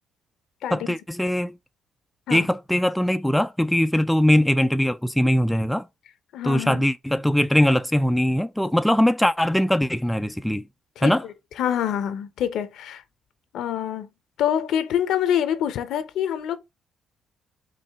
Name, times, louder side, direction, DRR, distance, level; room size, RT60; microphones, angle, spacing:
voice 1, 0.7-1.6 2.3-5.9 6.4-10.6 11.0-11.2, left 1 dB, 5° left, 0.3 m, -21 dB
voice 2, 6.3-6.8 11.0-11.2 11.6-13.0 13.5-14.1 14.4-16.6, left 10 dB, 80° left, 0.7 m, -25 dB
4.9 x 2.6 x 3.5 m
cardioid pair, 90°, 0 cm